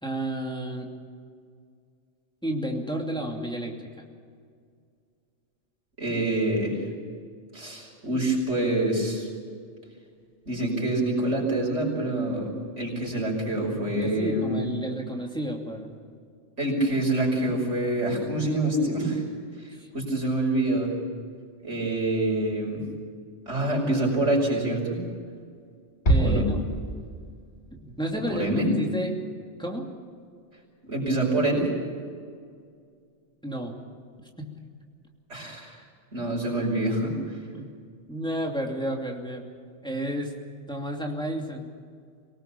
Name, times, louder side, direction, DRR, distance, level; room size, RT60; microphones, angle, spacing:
voice 1, 0.0-0.9 2.4-3.9 14.0-16.0 19.7-19.9 26.1-26.6 27.8-29.2 29.6-29.9 33.4-33.8 34.4-34.5 37.5-37.7 38.1-39.5 39.8-40.3 40.7-41.7, right 1 dB, 5° left, 0 dB, 2.7 m, -31 dB
voice 2, 6.0-6.8 7.5-9.3 10.5-14.5 16.6-19.2 19.9-20.9 21.6-22.8 23.5-25.0 26.2-26.4 28.3-28.7 30.8-31.7 35.3-35.8 36.1-37.1, right 1 dB, 90° right, -1 dB, 5.9 m, -26 dB
Bass drum, 26.1-27.5, right 1 dB, 65° left, 3.3 m, -24 dB
24.5 x 18.5 x 7.0 m, 2.2 s
omnidirectional pair, 1.2 m